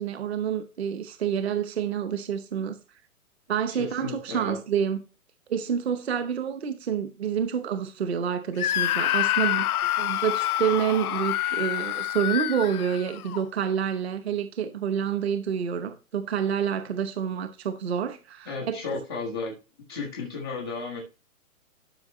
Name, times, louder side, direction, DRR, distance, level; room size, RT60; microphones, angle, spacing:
voice 1, 0.0-2.8 3.5-5.0 5.5-9.6 10.0-18.8, right 8 dB, 45° right, 0.9 m, -28 dB
voice 2, 3.7-4.6 18.4-19.5 19.9-21.0, left 4 dB, 5° right, 0.6 m, -34 dB
Screaming, 8.6-13.4, left 13 dB, 80° left, 0.5 m, -27 dB
11.5 x 5.9 x 3.0 m
hypercardioid pair, 175°, 43 cm